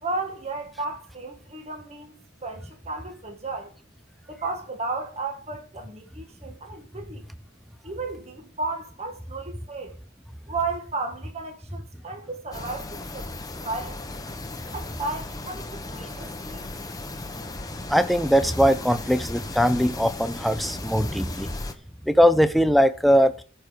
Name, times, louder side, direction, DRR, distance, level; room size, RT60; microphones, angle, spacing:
voice 1, 0.0-3.7 4.3-7.3 7.8-10.0 10.5-13.3 13.6-14.0 14.7-16.7, right 3 dB, 35° right, 1.7 m, -34 dB
sound 1, 12.5-21.7, left 2 dB, 20° left, 1.0 m, -36 dB
voice 2, 17.9-21.5 22.0-23.3, equal, ahead, 0.6 m, -20 dB
14.0 x 4.7 x 6.5 m
head